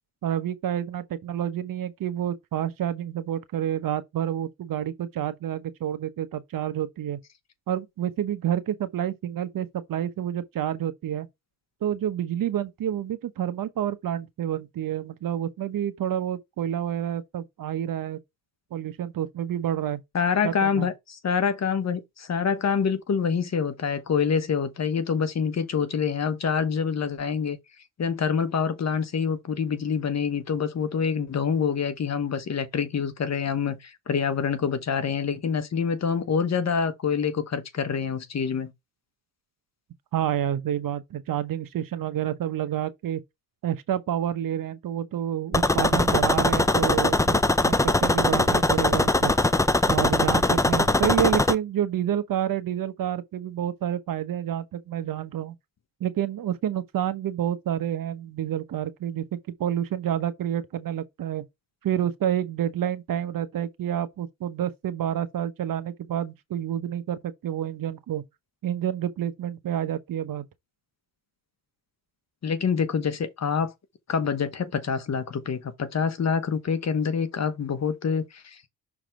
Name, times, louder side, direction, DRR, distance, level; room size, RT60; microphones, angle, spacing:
voice 1, 0.2-7.2 7.7-11.3 11.8-18.2 18.7-20.0 20.4-20.9 40.1-43.2 43.6-49.3 49.9-55.6 56.0-61.4 61.8-68.2 68.6-70.4, right 10 dB, 65° right, 1.0 m, -29 dB
voice 2, 20.1-27.6 28.0-38.7 72.4-73.7 74.1-78.7, left 6 dB, 45° left, 1.1 m, -26 dB
sound 1, 45.5-51.6, left 2 dB, 10° left, 0.5 m, -21 dB
6.2 x 3.6 x 4.4 m
cardioid pair, 80°, 36 cm